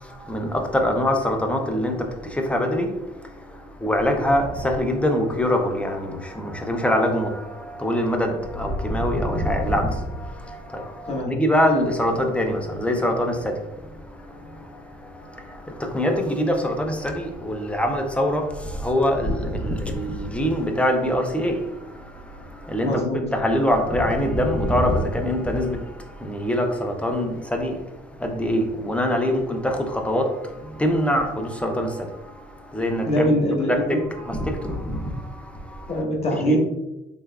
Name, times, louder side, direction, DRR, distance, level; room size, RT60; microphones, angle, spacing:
voice 1, 0.0-33.4 33.7-36.1 36.5-36.6, equal, 5° left, 0.4 m, -24 dB
voice 2, 22.8-23.2 33.0-34.0 35.9-36.6, equal, 35° left, 0.9 m, -23 dB
3.5 x 3.1 x 2.2 m
cardioid pair, 110°, 17 cm